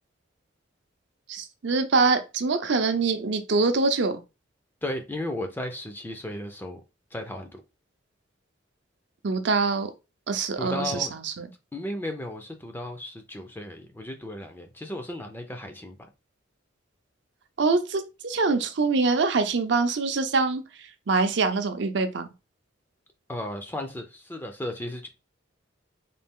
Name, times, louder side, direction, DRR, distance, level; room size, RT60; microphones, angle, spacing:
voice 1, 1.3-4.2 9.2-9.9 10.3-11.5 17.6-22.3, right 4 dB, 60° right, 0.5 m, -24 dB
voice 2, 4.8-6.8 7.1-7.6 10.6-11.1 11.7-16.1 23.3-25.1, left 1 dB, 10° left, 0.5 m, -35 dB
4.0 x 2.4 x 3.6 m
head